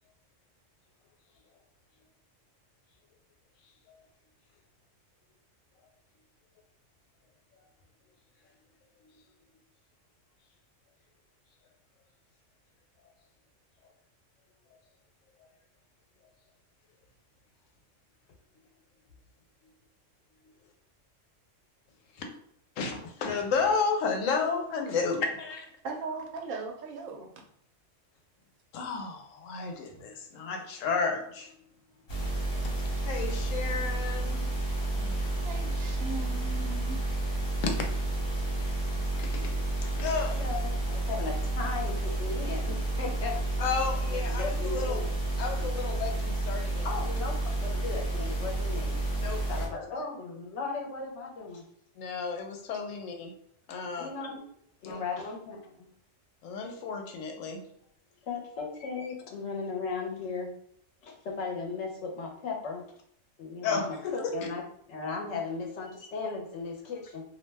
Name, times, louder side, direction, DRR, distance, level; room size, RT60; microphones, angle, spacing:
voice 1, 22.8-25.7 28.7-31.5 32.7-34.5 34.9-35.4 37.6-37.7 39.2-39.4 39.8-40.4 43.6-45.0 45.4-46.9 49.2-49.4 52.0-53.3 53.7-54.1 54.8-55.0 56.4-57.6 63.6-64.3, left 5 dB, 90° left, 4 dB, 1.0 m, -32 dB
voice 2, 25.8-27.3 35.4-37.0, right 4 dB, 90° right, 3 dB, 1.0 m, -38 dB
sound 1, 32.1-49.7, right 2 dB, 50° left, 1.0 m, -30 dB
voice 3, 40.3-43.4 44.1-45.2 46.8-49.0 49.5-51.6 54.0-54.4 54.8-55.9 58.3-60.5 61.0-62.9 63.4-67.2, left 4 dB, 70° left, 1 dB, 0.9 m, -36 dB
2.5 x 2.1 x 3.2 m, 0.67 s
omnidirectional pair, 1.3 m